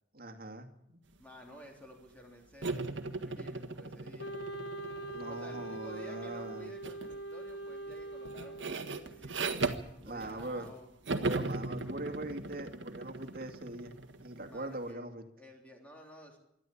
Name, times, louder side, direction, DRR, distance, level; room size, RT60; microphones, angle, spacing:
voice 1, 0.1-1.0 5.1-6.7 10.0-10.7 11.2-15.2, right 1 dB, 55° right, 6 dB, 2.2 m, -42 dB
voice 2, 1.2-2.8 3.2-4.3 5.3-9.6 10.0-10.9 14.5-15.1 15.4-16.4, equal, 10° left, 1 dB, 3.4 m, -53 dB
sound 1, 2.6-5.9 6.8-7.1 7.5-10.7 11.0-14.6, right 3 dB, 85° right, 1.7 m, -38 dB
Wind instrument woodwind instrument, 4.2-9.3, right 2 dB, 65° left, 1.7 m, -43 dB
26.5 x 12.0 x 8.6 m, 0.80 s
head